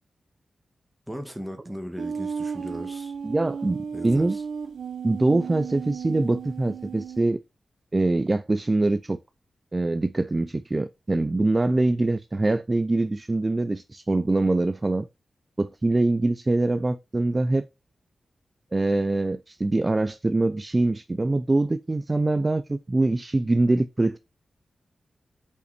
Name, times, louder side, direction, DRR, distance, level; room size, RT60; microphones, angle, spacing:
voice 1, 1.1-3.1 3.9-4.4, equal, 5° right, 1.5 m, -37 dB
sound 1, 2.0-7.2, right 6 dB, 85° right, 0.7 m, -34 dB
voice 2, 3.2-4.4 5.0-7.4 7.9-9.2 9.7-15.1 15.6-17.7 18.7-24.2, right 2 dB, 20° right, 0.4 m, -24 dB
6.5 x 5.6 x 4.2 m
wide cardioid pair, 175°, 0 cm